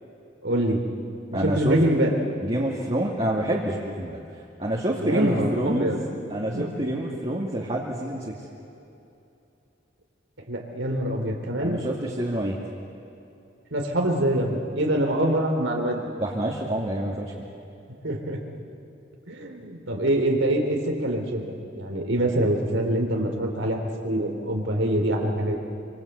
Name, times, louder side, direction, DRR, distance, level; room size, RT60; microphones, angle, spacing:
voice 1, 0.4-0.8 1.4-2.1 5.0-6.0 6.5-6.9 10.5-11.8 13.7-16.0 18.0-18.4 19.3-21.5 21.7-25.6, right 1 dB, 80° right, 2 dB, 3.5 m, -25 dB
voice 2, 1.3-1.8 2.4-4.2 4.6-6.0 6.3-8.3 11.6-12.6 16.2-17.3, right 1 dB, 30° right, -4 dB, 2.4 m, -27 dB
27.0 x 25.5 x 8.2 m, 2.7 s
head